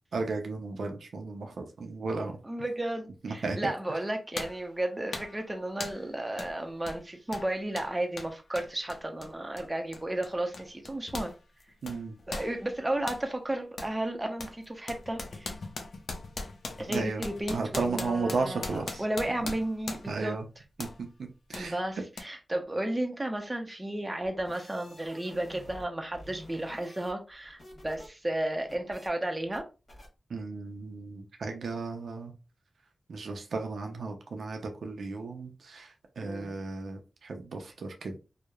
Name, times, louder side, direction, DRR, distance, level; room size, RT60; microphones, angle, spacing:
voice 1, 0.1-2.4 3.2-3.7 11.8-12.1 16.9-17.2 17.5-19.0 19.4-19.5 20.1-20.4 20.8-20.9 21.2-21.8 30.3-32.3 33.1-38.2, right 3 dB, 90° right, 0.5 m, -34 dB
voice 2, 2.4-11.3 12.3-15.5 16.8-20.4 21.5-29.7 36.2-36.6, right 1 dB, 20° right, 0.6 m, -33 dB
sound 1, 3.5-3.6 4.4-4.7 5.1-5.4 5.8-6.1 6.4-6.6 6.8-11.4 11.6-13.3 13.8-14.0 14.4-20.2 20.8-21.0 21.5-21.7 22.2-22.3, left 3 dB, 80° left, 0.4 m, -40 dB
sound 2, 24.2-25.9 26.1-28.1 28.4-29.1 29.5-29.6 29.9-30.1, left 1 dB, 50° left, 1.3 m, -49 dB
2.8 x 2.0 x 2.3 m
wide cardioid pair, 70°, 0 cm